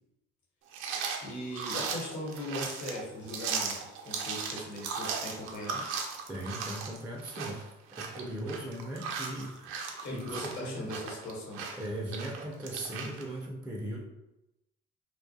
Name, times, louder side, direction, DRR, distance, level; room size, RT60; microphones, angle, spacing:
sound 1, 0.7-13.2, right 5 dB, 75° right, 0.5 m, -37 dB
voice 1, 1.2-5.9 10.0-11.7, left 1 dB, 55° left, -2 dB, 1.1 m, -39 dB
voice 2, 6.3-9.8 10.1-10.9 11.8-14.0, right 1 dB, 5° right, -1 dB, 0.4 m, -38 dB
2.3 x 2.3 x 2.6 m, 0.94 s
hypercardioid pair, 60°, 33 cm